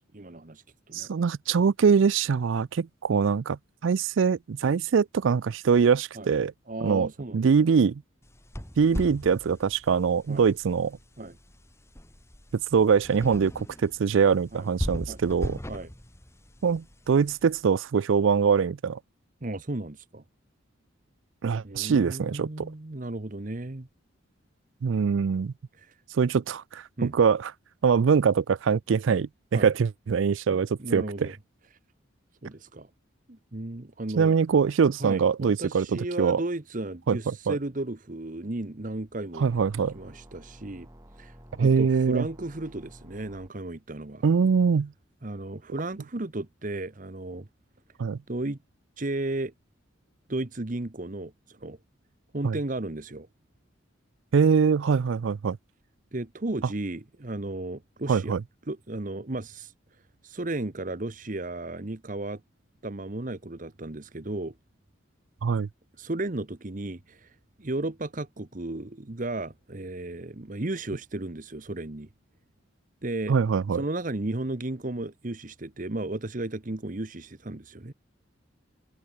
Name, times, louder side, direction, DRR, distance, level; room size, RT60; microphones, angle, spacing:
voice 1, 0.1-1.1 6.1-6.3 6.7-7.4 10.3-10.5 11.2-11.4 14.5-14.7 15.1-15.2 15.7-15.9 19.4-20.2 21.6-23.9 25.8-25.9 27.0-27.2 29.5-29.7 30.5-31.3 32.4-32.9 33.3-34.3 35.0-39.5 39.9-40.9 41.2-44.2 45.2-47.5 48.3-48.6 49.0-49.5 50.3-51.8 52.3-53.3 56.1-58.4 58.7-59.7 60.2-62.4 62.8-64.5 66.0-72.1 73.0-73.4 73.7-77.9, right 2 dB, 40° right, 1.0 m, -34 dB
voice 2, 0.9-6.5 6.8-8.0 8.8-11.0 12.7-15.6 16.6-19.0 21.4-22.7 24.8-25.5 26.1-27.5 27.8-31.3 34.2-36.4 37.1-37.6 39.4-39.9 41.6-42.3 44.2-44.9 48.0-48.2 52.4-52.6 54.3-55.6 58.1-58.4 65.4-65.7 73.3-73.8, right 6 dB, 70° right, 0.4 m, -23 dB
sound 1, 8.2-17.6, equal, 15° left, 2.4 m, -39 dB
sound 2, 39.5-43.5, equal, 15° right, 6.2 m, -51 dB
head